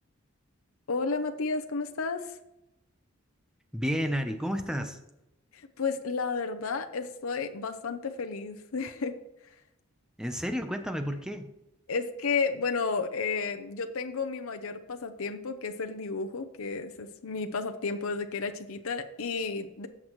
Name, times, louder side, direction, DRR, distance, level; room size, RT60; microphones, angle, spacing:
voice 1, 0.9-2.4 5.5-9.2 11.9-19.9, left 4 dB, 85° left, 6 dB, 0.7 m, -32 dB
voice 2, 3.7-5.0 10.2-11.5, equal, 5° right, 6 dB, 0.7 m, -31 dB
15.0 x 5.9 x 3.1 m, 0.89 s
head